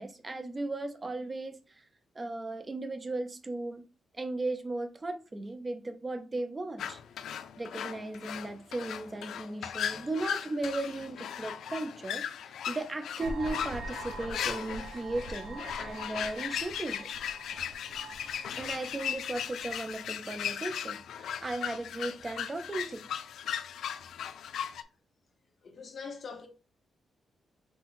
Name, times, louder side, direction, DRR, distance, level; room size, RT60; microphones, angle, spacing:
voice 1, 0.0-1.8 2.2-3.8 4.1-7.0 7.6-17.1 18.6-23.1, right 2 dB, 20° right, 0.4 m, -36 dB
sound 1, 6.8-24.8, left 9 dB, 90° left, 0.3 m, -37 dB
sound 2, 13.2-19.9, right 2 dB, 70° right, 0.8 m, -44 dB
voice 2, 25.6-26.5, left 5 dB, 40° left, 0.9 m, -42 dB
5.6 x 2.1 x 3.9 m
wide cardioid pair, 175°, 0 cm